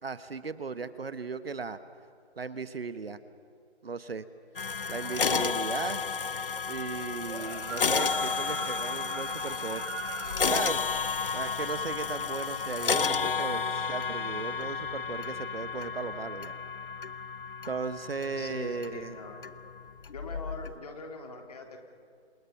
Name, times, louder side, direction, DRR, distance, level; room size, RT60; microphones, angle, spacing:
voice 1, 0.0-1.8 2.4-3.2 3.8-4.3 4.9-6.0 6.7-9.8 10.5-10.8 11.3-16.5 17.7-19.2, right 4 dB, 60° right, 12 dB, 1.4 m, -36 dB
sound 1, 4.6-20.8, left 5 dB, 55° left, 0.9 m, -32 dB
sound 2, 7.2-10.6, right 4 dB, 90° right, 3.0 m, -40 dB
voice 2, 18.4-19.6 20.1-21.8, left 3 dB, 35° left, 3 dB, 3.1 m, -43 dB
28.5 x 28.0 x 5.9 m, 2.4 s
figure-of-eight pair, 165°, 33 cm